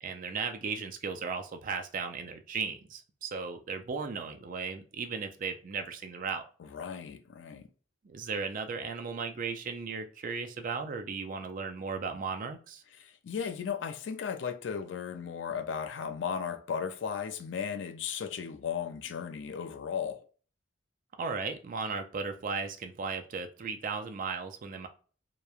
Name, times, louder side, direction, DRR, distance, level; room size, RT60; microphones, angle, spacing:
voice 1, 0.0-6.5 8.0-12.8 21.2-24.9, right 5 dB, 45° right, 0.4 m, -36 dB
voice 2, 6.6-7.7 13.0-20.2, left 7 dB, 70° left, 0.4 m, -36 dB
3.0 x 2.1 x 2.3 m
head